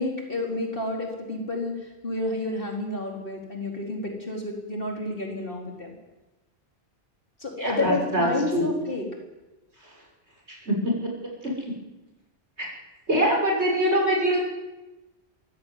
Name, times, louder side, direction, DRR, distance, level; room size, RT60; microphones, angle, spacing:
voice 1, 0.0-5.9 7.4-9.2, left 2 dB, 55° left, 1 dB, 4.7 m, -30 dB
voice 2, 7.6-8.7 10.5-11.1 11.4-11.7 13.1-14.4, equal, 85° right, -1 dB, 7.2 m, -24 dB
23.0 x 16.0 x 9.6 m, 1.1 s
omnidirectional pair, 1.1 m